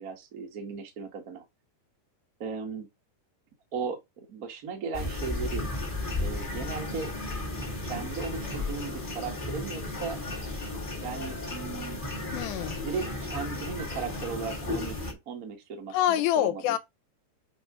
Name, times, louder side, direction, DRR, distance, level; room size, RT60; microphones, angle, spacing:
voice 1, 0.0-1.4 2.4-2.9 3.7-4.0 4.3-5.6 6.2-7.1 7.8-10.2 11.0-12.0 12.8-16.8, right 5 dB, 85° right, 0.7 m, -36 dB
sound 1, 4.9-15.1, left 2 dB, 45° left, 0.6 m, -34 dB
voice 2, 12.3-12.8 15.9-16.8, left 12 dB, 80° left, 2.1 m, -26 dB
7.7 x 3.7 x 4.9 m
omnidirectional pair, 4.8 m